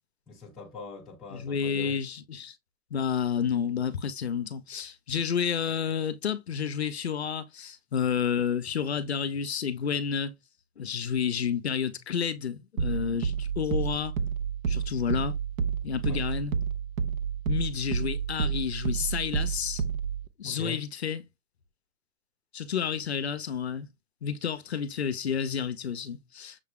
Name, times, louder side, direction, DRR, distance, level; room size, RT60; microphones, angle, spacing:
voice 1, 0.3-2.0 16.1-16.2 20.4-20.8, left 4 dB, ahead, 0.4 m, -42 dB
voice 2, 1.3-2.5 2.9-10.3 10.8-14.1 14.7-15.4 15.8-16.5 17.5-19.8 20.4-21.2 22.5-23.9 24.2-26.6, left 7 dB, 45° left, 0.6 m, -30 dB
sound 1, 12.8-20.3, right 7 dB, 65° right, 0.7 m, -30 dB
6.6 x 2.2 x 3.5 m
hypercardioid pair, 175°, 45 cm